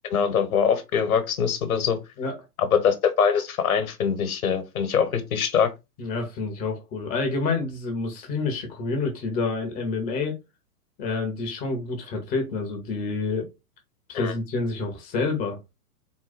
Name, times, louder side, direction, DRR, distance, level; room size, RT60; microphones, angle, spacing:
voice 1, 0.1-2.0 2.6-5.7 14.1-14.3, left 7 dB, 60° left, 1.2 m, -23 dB
voice 2, 6.0-10.4 11.0-13.5 14.1-15.8, left 3 dB, 20° left, 0.7 m, -28 dB
3.9 x 2.2 x 4.1 m
figure-of-eight pair, 115°, 48 cm